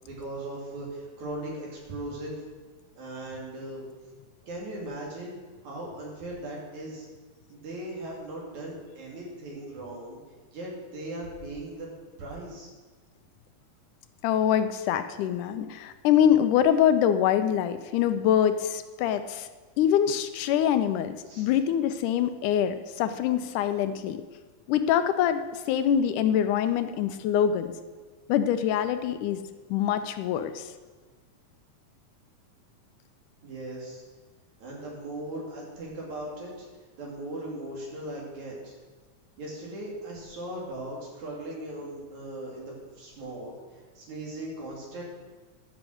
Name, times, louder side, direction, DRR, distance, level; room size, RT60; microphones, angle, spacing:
voice 1, 0.0-2.4 3.0-3.8 4.4-5.4 5.6-7.1 7.5-10.2 10.5-11.9 12.2-12.7 21.3-21.5 33.4-34.0 34.6-36.5 37.0-38.8 39.4-43.5 44.0-45.0, right 1 dB, 65° right, -3 dB, 4.0 m, -38 dB
voice 2, 14.2-19.5 19.8-24.2 24.7-27.7 28.3-29.4 29.7-30.7, left 9 dB, 85° left, 9 dB, 2.2 m, -24 dB
12.0 x 6.1 x 7.8 m, 1.4 s
omnidirectional pair, 3.5 m